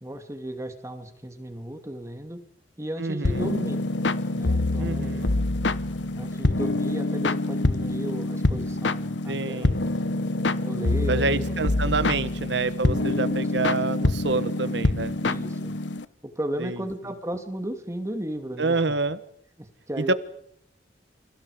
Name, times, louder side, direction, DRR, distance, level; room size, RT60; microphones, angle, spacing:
voice 1, 0.0-2.4 2.8-3.8 4.3-5.1 6.2-9.7 10.6-11.5 11.8-12.3 12.9-13.5 15.2-15.8 16.4-18.8 19.6-20.1, right 1 dB, 15° right, 7 dB, 2.5 m, -34 dB
voice 2, 3.0-3.4 4.8-5.4 9.3-9.8 11.1-15.1 16.6-16.8 18.6-19.2 20.0-20.1, right 3 dB, 70° right, 13 dB, 1.3 m, -27 dB
sound 1, 3.2-16.0, left 2 dB, 80° left, 1.1 m, -26 dB
29.0 x 28.0 x 5.0 m, 0.69 s
head